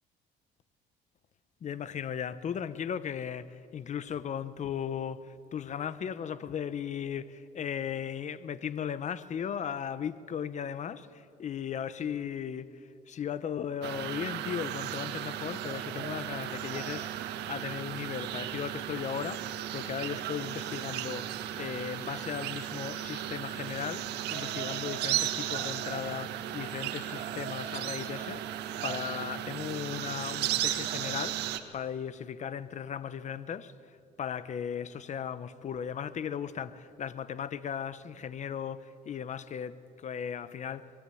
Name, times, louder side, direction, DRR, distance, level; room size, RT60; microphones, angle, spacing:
voice 1, 1.6-17.1 17.5-28.5 28.8-31.4 31.7-33.7 34.2-40.9, left 8 dB, 45° left, 1.1 m, -37 dB
sound 1, 13.8-31.6, right 12 dB, 80° right, 1.8 m, -35 dB
25.0 x 22.0 x 9.3 m
cardioid pair, 110°, 17 cm